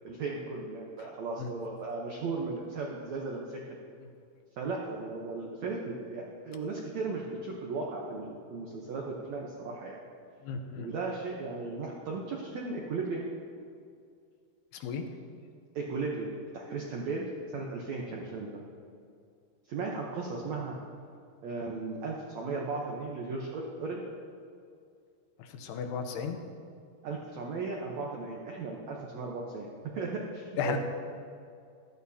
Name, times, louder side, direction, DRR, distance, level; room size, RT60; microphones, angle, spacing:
voice 1, 0.0-3.6 4.6-10.0 10.7-13.3 15.7-17.3 17.5-18.6 19.7-20.8 21.4-24.0 27.0-29.7 29.9-30.8, right 3 dB, 80° right, -2 dB, 1.5 m, -36 dB
voice 2, 10.4-10.9 14.7-15.0 25.4-26.4 30.6-30.8, left 6 dB, 90° left, 5 dB, 2.9 m, -34 dB
15.0 x 11.5 x 2.8 m, 2.3 s
omnidirectional pair, 4.5 m